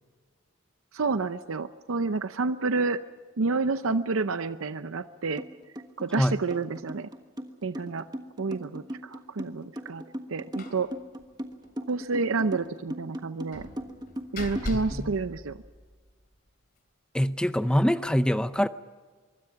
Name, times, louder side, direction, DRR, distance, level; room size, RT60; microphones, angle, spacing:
voice 1, 0.9-3.0 3.4-5.4 6.0-7.1 7.6-8.0 8.4-10.0 10.3-10.9 11.9-13.7 14.3-15.6, right 3 dB, 80° right, 11 dB, 0.7 m, -29 dB
sound 1, 5.4-5.5 5.8-15.0, equal, 20° right, 1.4 m, -38 dB
Slam, 10.6-10.9 11.2-11.3 11.6-11.7 13.5-16.1, left 1 dB, 45° left, 2.9 m, -39 dB
voice 2, 17.1-18.7, equal, 5° left, 12 dB, 0.5 m, -24 dB
25.0 x 23.5 x 5.8 m, 1.5 s
head